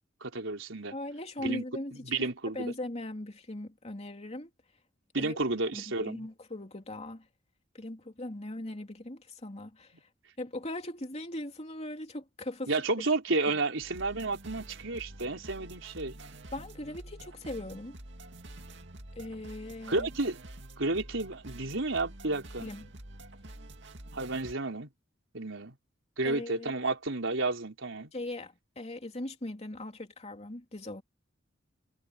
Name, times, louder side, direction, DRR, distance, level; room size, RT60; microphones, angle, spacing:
voice 1, 0.2-0.9 1.4-1.6 2.1-2.7 5.1-6.2 12.7-16.1 19.9-20.4 20.8-22.7 24.1-24.9 25.3-25.7 26.2-28.1, right 3 dB, 85° right, 3.9 m, -31 dB
voice 2, 0.9-2.0 2.5-4.5 5.1-5.4 5.7-7.3 7.7-9.9 10.4-12.7 16.5-18.0 19.1-20.1 22.6-22.9 26.2-26.7 28.1-31.0, left 1 dB, 35° left, 2.9 m, -39 dB
sound 1, 13.8-24.5, right 1 dB, 65° right, 2.4 m, -48 dB
head